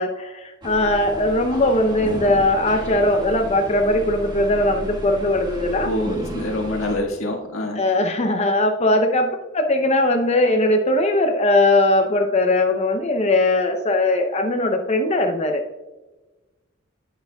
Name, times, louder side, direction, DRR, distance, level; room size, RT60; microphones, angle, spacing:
voice 1, 0.0-5.9 7.8-15.6, left 1 dB, 35° left, 4 dB, 0.6 m, -20 dB
sound 1, 0.6-7.0, right 1 dB, 20° right, 1.6 m, -33 dB
voice 2, 5.8-7.8, left 1 dB, 85° left, 0 dB, 1.6 m, -25 dB
11.0 x 8.1 x 2.3 m, 1.1 s
head